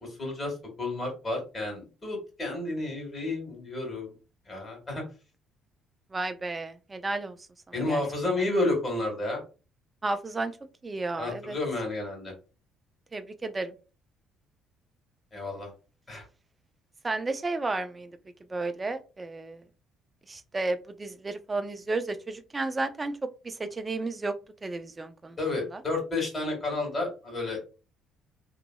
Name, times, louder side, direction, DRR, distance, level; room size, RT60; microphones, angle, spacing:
voice 1, 0.0-4.1 4.5-5.0 7.7-9.4 11.2-12.3 15.3-15.7 16.1-16.3 25.4-27.7, left 2 dB, 30° left, 1.6 m, -31 dB
voice 2, 6.1-7.4 7.9-8.0 10.0-10.5 10.8-11.6 13.1-13.7 17.0-18.1 18.5-19.6 20.3-23.1 23.4-24.3 24.6-25.4 25.7-25.8, right 3 dB, 25° right, 0.5 m, -32 dB
2.8 x 2.7 x 2.2 m
hypercardioid pair, 50°, 0 cm